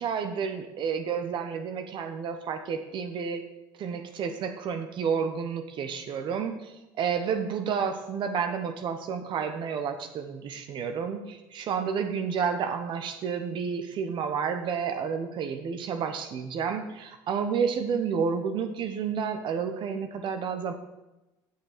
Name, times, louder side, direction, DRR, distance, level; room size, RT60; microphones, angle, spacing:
voice 1, 0.0-3.4 3.8-20.7, right 6 dB, 55° right, 7 dB, 1.0 m, -30 dB
8.4 x 6.4 x 6.7 m, 0.99 s
supercardioid pair, 80°, 10 cm